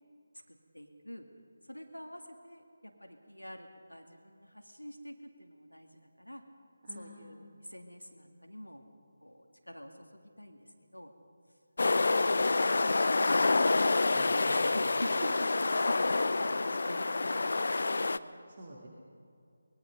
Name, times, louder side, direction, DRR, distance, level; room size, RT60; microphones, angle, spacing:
voice 1, 0.5-1.3 1.7-6.4 6.9-8.8 9.2-11.1 14.2-18.2, equal, 90° left, 5 dB, 2.0 m, -47 dB
voice 2, 6.8-7.3 13.0-13.3 14.0-14.6 18.5-18.9, right 1 dB, 40° right, -2 dB, 2.6 m, -49 dB
sound 1, 11.8-18.2, left 3 dB, 55° left, 0.6 m, -27 dB
24.0 x 21.0 x 5.2 m, 2.4 s
figure-of-eight pair, 155°, 0 cm